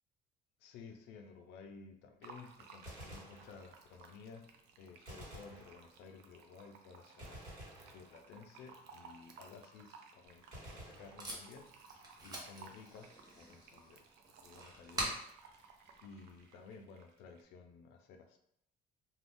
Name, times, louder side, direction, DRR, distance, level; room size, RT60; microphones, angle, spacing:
voice 1, 0.6-4.5 4.8-7.4 7.9-15.2 15.5-15.6 16.0-18.4, left 5 dB, 90° left, 6 dB, 0.4 m, -55 dB
Fill (with liquid), 2.2-17.4, right 4 dB, 80° right, 0.4 m, -59 dB
Gunshot gunfire, 2.8-4.1 5.1-6.3 7.2-8.6 10.5-11.9, equal, 50° right, 1.4 m, -52 dB
Packing tape duct tape, 10.3-16.7, right 1 dB, 25° right, 0.9 m, -46 dB
2.5 x 2.3 x 3.3 m, 0.75 s
cardioid pair, 110°, 17 cm